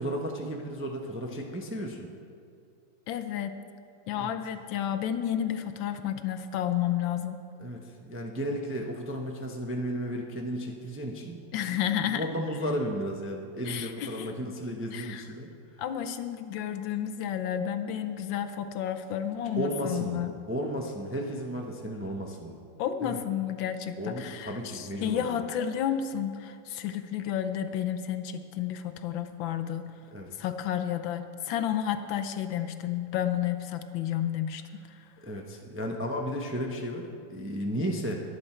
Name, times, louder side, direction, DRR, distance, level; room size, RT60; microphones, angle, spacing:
voice 1, 0.0-2.1 4.1-4.3 7.6-15.5 19.6-22.6 23.0-23.2 24.0-25.4 30.1-30.3 35.2-38.2, equal, 15° right, 1 dB, 0.4 m, -34 dB
voice 2, 3.1-3.6 4.1-7.4 11.5-12.3 13.7-14.3 14.9-15.2 15.8-20.3 22.8-29.9 30.4-34.6, left 10 dB, 85° left, 9 dB, 1.5 m, -31 dB
22.5 x 7.9 x 4.5 m, 2.4 s
omnidirectional pair, 2.1 m